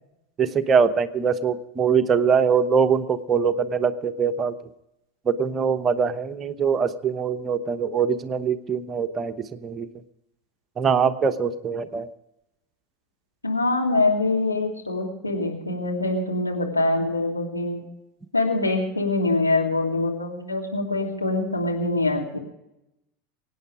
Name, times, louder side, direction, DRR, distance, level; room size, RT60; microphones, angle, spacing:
voice 1, 0.4-4.5 5.3-9.9 10.8-12.1, right 6 dB, 25° right, 10 dB, 1.0 m, -23 dB
voice 2, 13.4-17.8 18.3-22.4, left 2 dB, 85° left, -1 dB, 2.9 m, -24 dB
23.5 x 9.3 x 4.9 m, 0.88 s
figure-of-eight pair, 80°, 0 cm